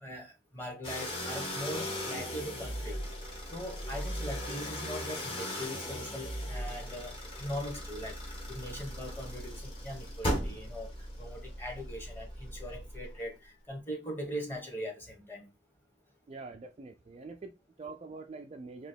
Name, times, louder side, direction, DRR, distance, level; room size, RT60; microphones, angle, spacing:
voice 1, 0.0-3.0 3.5-8.2 8.5-10.9 11.2-15.5, equal, 10° left, 1.2 m, -41 dB
sound 1, 0.8-13.2, equal, 30° left, 1.2 m, -38 dB
voice 2, 16.3-18.9, right 3 dB, 35° right, 0.3 m, -45 dB
3.0 x 2.9 x 4.4 m
head